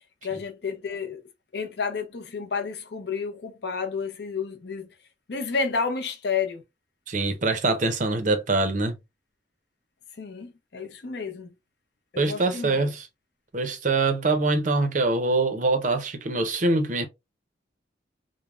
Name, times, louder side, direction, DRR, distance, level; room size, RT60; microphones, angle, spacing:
voice 1, 0.2-1.2 1.5-4.9 5.3-6.6 10.2-11.5 12.1-12.9, left 5 dB, 60° left, 0.5 m, -31 dB
voice 2, 7.1-9.0 12.2-13.1 13.5-17.1, right 3 dB, 40° right, 0.5 m, -24 dB
3.2 x 2.0 x 2.3 m
head